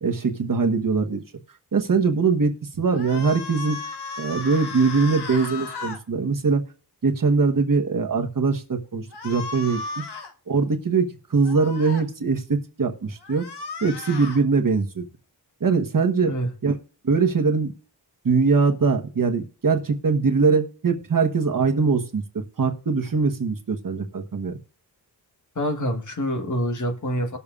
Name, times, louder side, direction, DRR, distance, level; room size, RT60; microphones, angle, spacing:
voice 1, 0.0-1.2 1.7-3.8 4.2-6.6 7.0-10.0 10.5-13.5 13.8-15.0 15.6-16.3 16.6-16.7 17.0-17.7 18.2-24.6, right 4 dB, 55° right, 1.3 m, -22 dB
sound 1, 2.9-6.0 9.1-10.3 11.4-12.0 13.2-14.4, left 4 dB, 75° left, 1.2 m, -35 dB
voice 2, 25.5-27.4, equal, 45° left, 1.4 m, -26 dB
19.5 x 6.9 x 2.4 m
wide cardioid pair, 85°, 40 cm